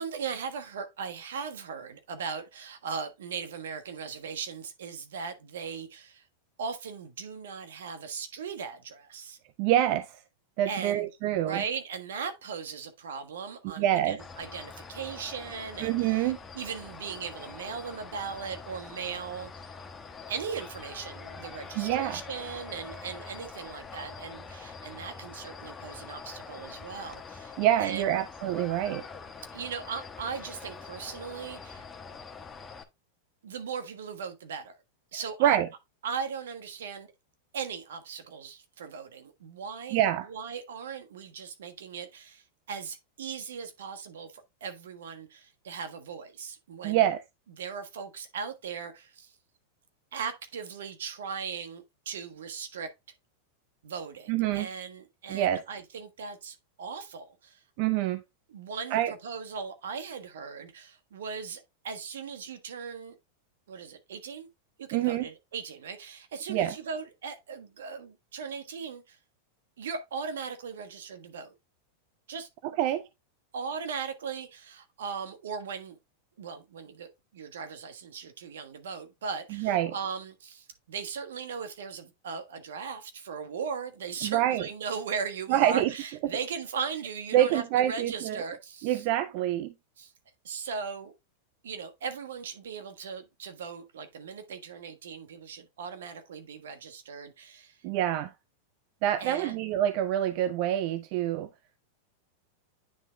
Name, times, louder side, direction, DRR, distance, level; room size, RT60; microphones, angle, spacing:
voice 1, 0.0-6.3 6.6-9.4 10.6-11.1 11.4-19.7 20.3-28.2 29.5-31.9 33.4-34.8 35.1-35.6 36.0-37.1 37.5-47.0 47.6-49.3 50.1-52.9 53.8-57.6 58.5-63.1 63.7-64.5 64.8-69.2 69.8-71.5 72.3-72.5 73.5-76.0 76.4-89.0 90.0-90.1 90.4-91.1 91.6-97.8 99.2-99.5, right 6 dB, 80° right, 1.3 m, -38 dB
voice 2, 9.6-10.2 10.6-11.6 13.6-14.2 15.8-16.4 21.8-22.2 27.6-29.0 35.4-35.7 39.9-40.3 46.8-47.2 54.3-54.7 55.3-55.6 57.8-58.2 58.9-59.1 64.9-65.3 66.5-66.7 72.8-73.0 79.5-79.9 84.2-84.7 85.5-85.9 87.3-88.4 88.8-89.7 97.8-98.3 99.0-101.5, right 12 dB, 55° right, 0.5 m, -26 dB
sound 1, 14.2-32.8, left 5 dB, 20° left, 1.1 m, -44 dB
9.4 x 3.7 x 3.3 m
hypercardioid pair, 115°, 0 cm